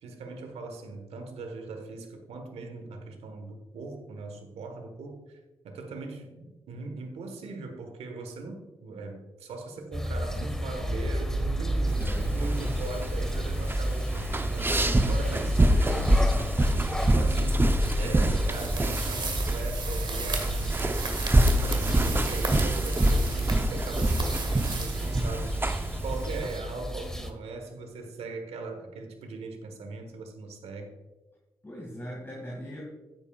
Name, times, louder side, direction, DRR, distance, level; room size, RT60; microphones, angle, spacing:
voice 1, 0.0-5.4 5.6-12.1 12.3-16.5 17.0-30.9, right 3 dB, 70° right, 6 dB, 1.3 m, -40 dB
sound 1, 9.9-27.3, equal, 5° left, 1.5 m, -33 dB
voice 2, 11.7-12.3 31.6-32.8, equal, 20° left, -2 dB, 2.1 m, -40 dB
sound 2, 11.9-26.6, right 1 dB, 20° right, 0.7 m, -26 dB
sound 3, 18.5-25.6, right 3 dB, 45° right, 1.8 m, -35 dB
10.5 x 8.4 x 2.4 m, 1.1 s
hypercardioid pair, 40°, 11 cm